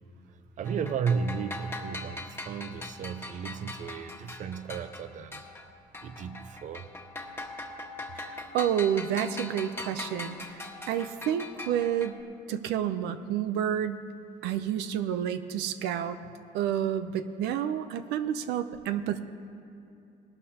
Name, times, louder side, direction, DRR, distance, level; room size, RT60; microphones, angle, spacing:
sound 1, 0.6-5.7 5.9-12.2, left 2 dB, 15° left, 1.4 m, -41 dB
voice 1, 0.6-5.4 6.0-6.8, right 6 dB, 45° right, 11 dB, 0.6 m, -34 dB
voice 2, 8.1-12.2 12.5-14.0 14.4-16.2 16.5-19.2, right 9 dB, 85° right, 10 dB, 0.6 m, -30 dB
20.0 x 12.0 x 2.8 m, 2.6 s
cardioid pair, 110°, 17 cm